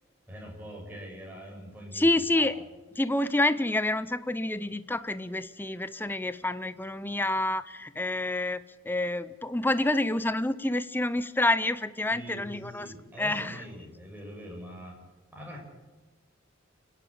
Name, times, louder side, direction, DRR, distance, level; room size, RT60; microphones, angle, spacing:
voice 1, 0.3-2.5 12.1-15.0 15.3-15.6, equal, 10° right, -1 dB, 6.5 m, -43 dB
voice 2, 1.9-2.5 3.0-12.9 13.2-13.6, left 2 dB, 10° left, 14 dB, 0.6 m, -28 dB
29.5 x 11.0 x 8.6 m, 1.2 s
head